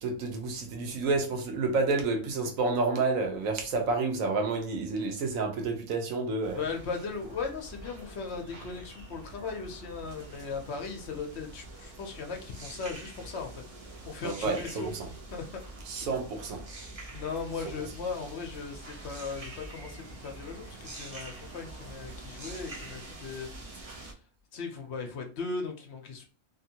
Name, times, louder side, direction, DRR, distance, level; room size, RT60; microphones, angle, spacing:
voice 1, 0.0-6.6 14.2-14.9 15.9-16.6, right 3 dB, 85° right, 1.2 m, -29 dB
sound 1, 6.4-24.1, right 2 dB, 35° right, 0.6 m, -46 dB
voice 2, 6.5-13.6 14.0-14.9 15.3-15.6 16.0-16.1 17.1-24.2 24.5-26.2, left 5 dB, 65° left, 0.8 m, -38 dB
2.9 x 2.5 x 2.7 m
omnidirectional pair, 1.4 m